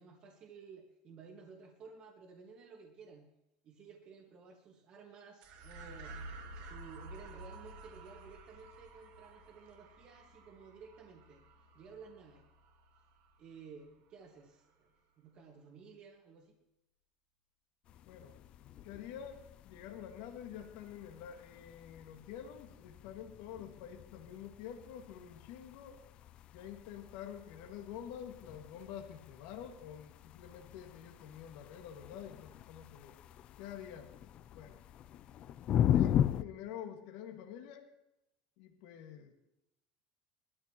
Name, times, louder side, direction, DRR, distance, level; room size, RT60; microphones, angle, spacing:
voice 1, 0.0-3.2 3.6-6.2 6.5-11.4 11.7-12.4 13.4-16.6, right 5 dB, 35° right, 0 dB, 1.7 m, -54 dB
sound 1, 5.4-14.0, right 2 dB, 60° right, 1.7 m, -52 dB
sound 2, 17.8-36.4, left 10 dB, 35° left, 0.4 m, -39 dB
voice 2, 18.1-18.4 18.8-26.0 26.5-33.2 33.6-34.1 34.5-34.8 35.9-37.9 38.6-39.3, left 9 dB, 65° left, 3 dB, 1.9 m, -48 dB
19.5 x 13.0 x 3.0 m, 0.87 s
cardioid pair, 165°, 3 cm